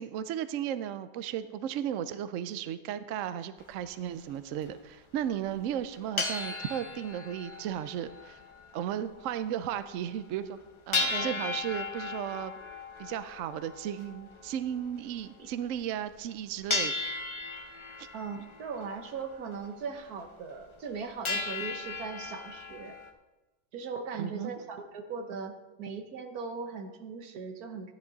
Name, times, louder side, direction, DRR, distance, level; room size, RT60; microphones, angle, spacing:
voice 1, 0.0-8.4 8.7-10.6 10.9-12.5 13.0-16.9 18.0-18.1 24.2-24.5, right 10 dB, 75° right, 12 dB, 0.7 m, -35 dB
sound 1, 3.6-3.7 4.3-4.4 4.6-4.7 5.4-5.5 5.8-8.9 9.2-9.3 9.7-9.8 10.1-10.2 10.9-15.5 16.1-16.3 16.7-19.7 20.1-20.2 20.5-21.0 21.2-23.1, left 3 dB, 40° left, 0.4 m, -36 dB
voice 2, 11.1-11.5 18.1-23.0 23.7-27.9, right 5 dB, 60° right, 6 dB, 1.4 m, -39 dB
13.0 x 10.5 x 4.0 m, 1.1 s
omnidirectional pair, 1.9 m